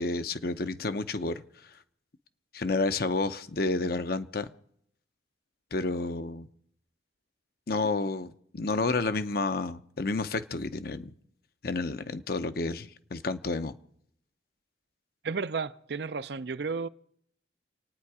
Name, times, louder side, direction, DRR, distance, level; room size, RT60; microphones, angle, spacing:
voice 1, 0.0-1.4 2.5-4.5 5.7-6.5 7.7-11.1 11.6-13.7, left 3 dB, 55° left, 0.7 m, -30 dB
voice 2, 15.2-16.9, right 4 dB, 60° right, 0.5 m, -33 dB
28.5 x 9.4 x 4.9 m
head